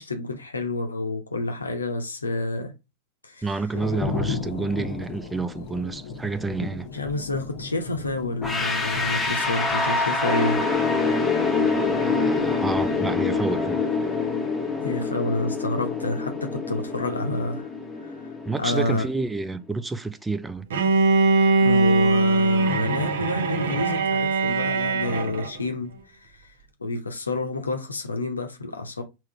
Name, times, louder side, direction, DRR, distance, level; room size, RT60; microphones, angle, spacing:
voice 1, 0.0-2.7 3.2-3.4 6.9-10.7 14.8-17.7 18.0-18.3 18.6-19.1 21.3-26.4 26.8-29.0, left 2 dB, 80° left, 0.8 m, -29 dB
voice 2, 3.4-6.9 11.8-13.8 18.5-20.7, right 3 dB, 10° right, 0.4 m, -29 dB
sound 1, 3.7-13.7, left 4 dB, 45° left, 0.8 m, -36 dB
sound 2, 8.4-19.3, left 4 dB, 5° left, 1.0 m, -26 dB
Bowed string instrument, 20.7-25.6, right 3 dB, 60° right, 1.0 m, -21 dB
3.7 x 3.0 x 4.3 m
figure-of-eight pair, 90°, 0 cm